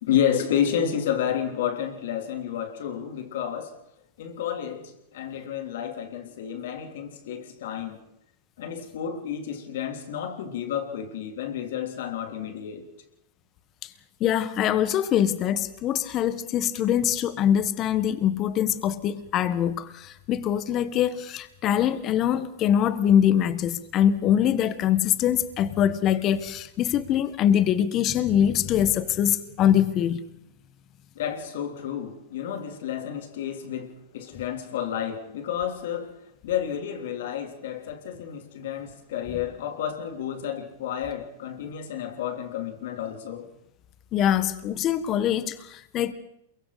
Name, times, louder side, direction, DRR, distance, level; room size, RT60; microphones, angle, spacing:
voice 1, 0.0-3.8 4.2-8.0 8.6-12.9 31.2-43.5, left 9 dB, 70° left, 3.5 m, -30 dB
voice 2, 14.2-30.2 44.1-46.1, left 10 dB, 35° left, 1.6 m, -23 dB
28.0 x 23.5 x 4.3 m
hypercardioid pair, 115°, 0 cm